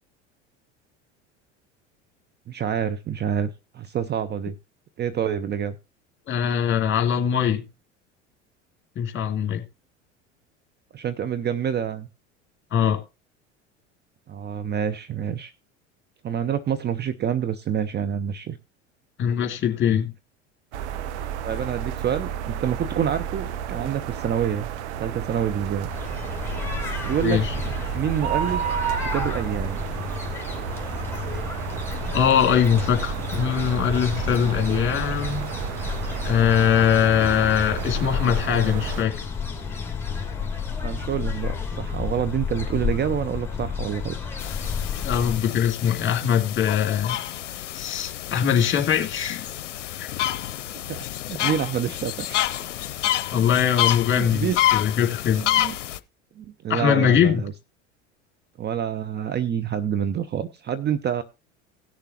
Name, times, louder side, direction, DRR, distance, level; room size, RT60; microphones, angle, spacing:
voice 1, 2.5-4.6 5.0-5.8 10.9-12.1 14.3-15.5 16.2-18.6 21.4-24.7 25.0-25.9 27.0-27.4 27.9-28.7 29.0-29.8 40.8-44.1 50.9-52.5 54.1-54.6 55.4-55.8 56.4-57.5 58.6-61.2, right 8 dB, 30° right, 0.7 m, -27 dB
voice 2, 6.3-7.6 9.0-9.6 12.7-13.0 19.2-20.1 27.2-27.5 32.1-35.5 36.2-39.2 45.0-47.2 47.7-49.4 50.0-50.1 53.3-55.5 56.7-57.4, left 8 dB, 30° left, 2.6 m, -22 dB
sound 1, 20.7-39.0, right 9 dB, 70° right, 0.9 m, -31 dB
sound 2, 25.9-45.4, left 5 dB, 5° left, 2.7 m, -31 dB
sound 3, 44.4-56.0, left 12 dB, 80° left, 0.6 m, -28 dB
17.5 x 6.8 x 2.9 m
hypercardioid pair, 75°, 36 cm